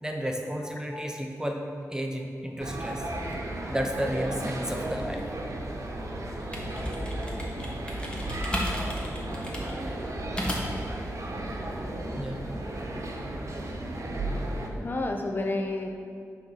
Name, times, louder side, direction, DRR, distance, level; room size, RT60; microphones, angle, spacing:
voice 1, 0.0-3.1 3.7-5.2 12.2-12.4, equal, 10° right, 2 dB, 0.6 m, -32 dB
sound 1, 2.6-14.7, right 1 dB, 55° right, 1.0 m, -34 dB
sound 2, 6.4-10.9, equal, 15° left, 1.4 m, -33 dB
voice 2, 14.7-15.9, left 2 dB, 35° left, 3 dB, 0.6 m, -31 dB
8.9 x 4.0 x 5.5 m, 2.4 s
wide cardioid pair, 90°, 6 cm